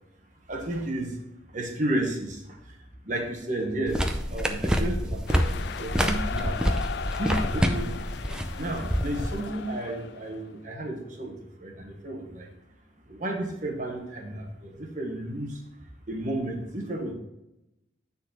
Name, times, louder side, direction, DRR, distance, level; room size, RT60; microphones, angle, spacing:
voice 1, 0.5-1.1 1.5-2.4 3.0-4.0 4.3-6.6 7.2-8.0 8.5-11.3 11.6-12.5 13.1-15.6 16.1-17.1, right 1 dB, 40° right, 2 dB, 1.3 m, -32 dB
sound 1, 3.9-9.4, equal, 5° right, 0.5 m, -27 dB
sound 2, 5.3-10.4, left 7 dB, 55° left, 0.3 m, -37 dB
9.4 x 4.0 x 4.2 m, 0.89 s
head